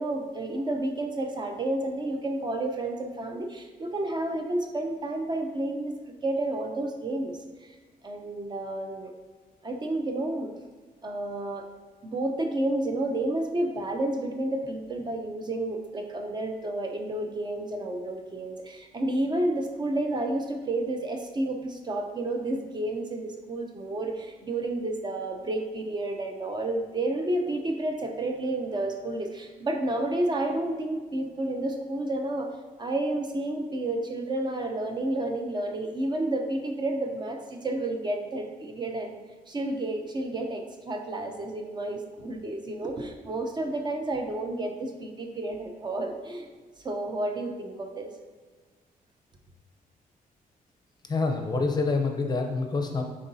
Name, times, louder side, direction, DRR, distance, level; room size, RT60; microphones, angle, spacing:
voice 1, 0.0-5.9 6.2-7.7 8.0-9.1 9.6-10.5 11.0-11.7 12.0-32.5 32.8-39.2 39.5-46.5 46.8-48.1, right 1 dB, 30° right, 4 dB, 0.5 m, -30 dB
voice 2, 51.0-53.0, left 3 dB, 25° left, 3 dB, 0.6 m, -27 dB
9.8 x 3.7 x 2.7 m, 1.4 s
wide cardioid pair, 175°, 15 cm